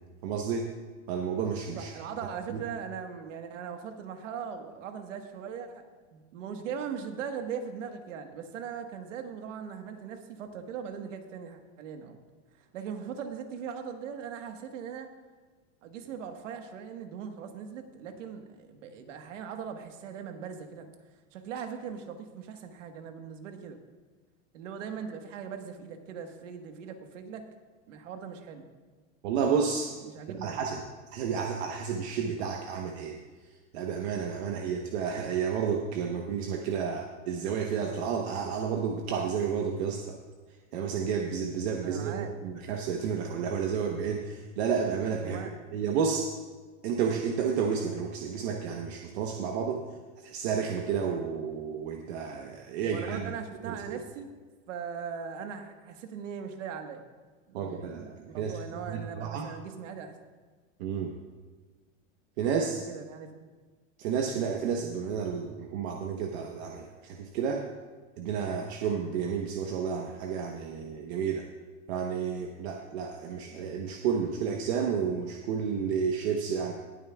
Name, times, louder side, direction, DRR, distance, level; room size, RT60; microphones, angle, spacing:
voice 1, 0.2-0.7 1.1-1.9 2.5-2.6 29.2-29.9 30.4-30.8 31.1-33.2 33.7-40.2 40.7-46.3 46.8-49.8 50.2-53.3 53.6-54.0 57.5-58.6 58.9-59.5 60.8-61.1 62.4-62.8 64.0-67.7 68.2-71.5 71.9-76.7, right 6 dB, 60° right, 2 dB, 1.1 m, -31 dB
voice 2, 1.8-5.8 6.1-12.2 12.6-15.1 15.8-20.9 21.3-23.8 24.5-27.4 27.9-28.7 30.0-30.6 41.8-42.3 45.2-45.5 52.8-54.3 54.7-57.1 57.5-60.1 62.6-63.3, right 7 dB, 85° right, 5 dB, 1.5 m, -40 dB
19.0 x 8.9 x 2.3 m, 1.4 s
supercardioid pair, 155°, 36 cm